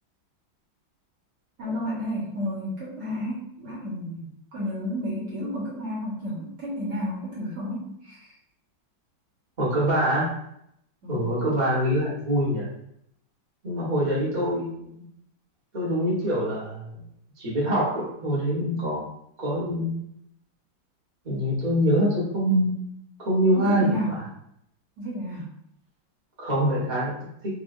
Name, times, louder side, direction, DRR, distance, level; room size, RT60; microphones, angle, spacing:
voice 1, 1.6-8.3 11.0-11.3 23.6-24.2 25.0-25.5, equal, 60° right, -8 dB, 1.9 m, -32 dB
voice 2, 9.6-10.3 11.1-12.7 13.6-15.0 15.7-16.9 17.4-19.1 19.4-20.0 21.2-22.7 23.2-23.9 26.4-27.1, equal, 30° right, -7 dB, 1.0 m, -24 dB
4.9 x 2.7 x 2.5 m, 0.74 s
omnidirectional pair, 2.2 m